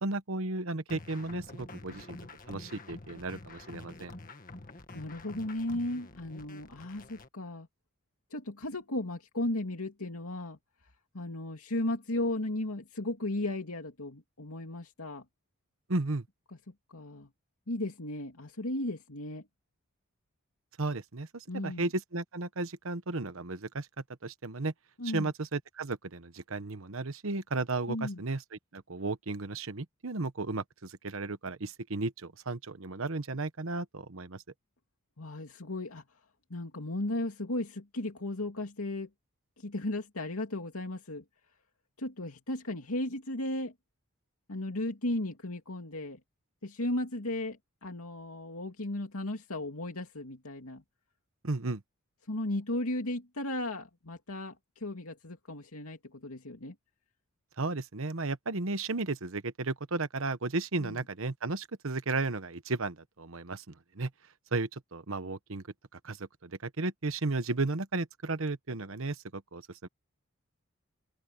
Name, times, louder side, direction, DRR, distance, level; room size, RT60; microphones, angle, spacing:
voice 1, 0.0-2.2 2.5-4.1 15.9-16.3 20.8-23.9 24.2-24.7 25.1-34.4 51.4-51.8 57.6-64.1 64.5-65.6 66.0-69.9, right 3 dB, 65° right, 1.1 m, -34 dB
sound 1, 0.9-7.3, left 2 dB, 40° left, 1.9 m, -48 dB
voice 2, 4.9-7.7 8.3-10.6 11.1-15.2 16.5-16.6 16.9-17.3 17.7-19.5 21.5-21.9 25.0-25.3 27.9-28.2 35.2-36.0 36.5-39.1 39.6-41.2 42.0-43.7 44.5-46.2 46.6-50.8 52.3-56.7 60.8-61.0, left 1 dB, 85° left, 2.5 m, -35 dB
open air
head